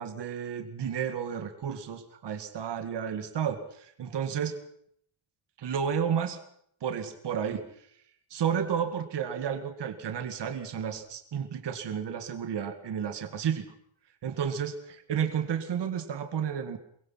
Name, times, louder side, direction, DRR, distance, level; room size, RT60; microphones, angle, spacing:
voice 1, 0.0-4.5 5.6-6.4 6.8-7.6 8.3-13.7 14.2-16.8, right 8 dB, 55° right, 8 dB, 2.2 m, -32 dB
23.5 x 21.5 x 5.7 m, 0.68 s
wide cardioid pair, 180°, 48 cm